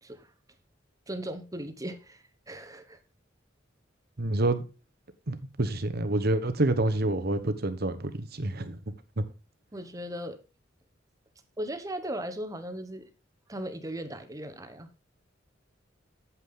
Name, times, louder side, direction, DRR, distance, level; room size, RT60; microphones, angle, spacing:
voice 1, 1.1-3.0 9.7-10.4 11.6-13.1 13.5-14.9, right 1 dB, 20° right, 1.1 m, -37 dB
voice 2, 4.2-4.6 5.3-9.2, right 2 dB, 55° right, 1.0 m, -28 dB
8.5 x 7.6 x 3.7 m
head